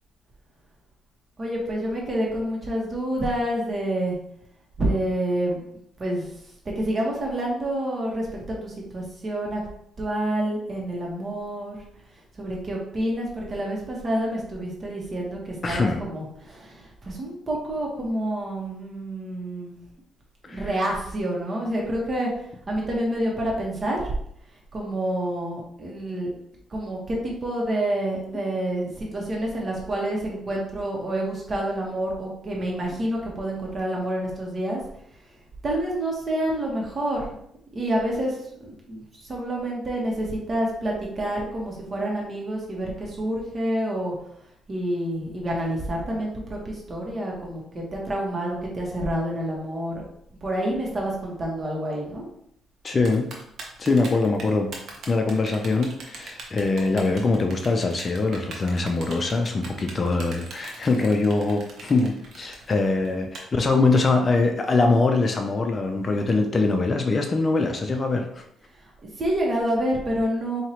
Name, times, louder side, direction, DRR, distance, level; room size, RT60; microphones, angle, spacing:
voice 1, 1.4-4.2 4.8-5.6 6.0-6.3 6.8-9.6 10.0-11.7 12.4-19.8 20.4-22.3 22.7-24.0 24.7-26.3 26.7-34.8 35.6-37.2 37.7-44.1 44.7-50.0 50.4-52.2 69.2-70.6, right 1 dB, 40° right, -2 dB, 1.4 m, -28 dB
voice 2, 15.6-16.0 20.5-20.7 52.8-53.3 53.8-54.7 55.1-68.4, left 3 dB, 35° left, 4 dB, 0.5 m, -23 dB
Typing, 53.0-63.4, right 3 dB, 65° right, 1.0 m, -41 dB
4.6 x 2.8 x 2.9 m, 0.73 s
cardioid pair, 90°, 0 cm